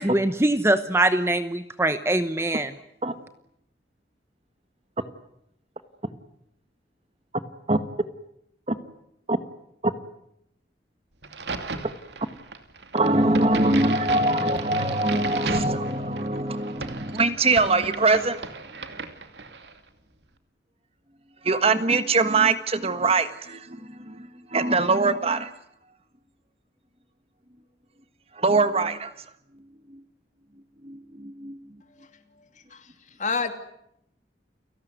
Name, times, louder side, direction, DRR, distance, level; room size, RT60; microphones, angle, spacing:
voice 1, 0.0-2.7, right 1 dB, 15° right, 1.0 m, -23 dB
Crack, 11.2-19.8, right 4 dB, 80° right, 2.6 m, -36 dB
voice 2, 12.9-18.4 21.4-25.5 28.3-29.1 29.9-30.0 30.8-31.6, right 3 dB, 35° right, 1.5 m, -23 dB
voice 3, 32.4-32.9 33.2-33.5, left 4 dB, 45° left, 2.8 m, -29 dB
30.0 x 18.5 x 9.5 m
head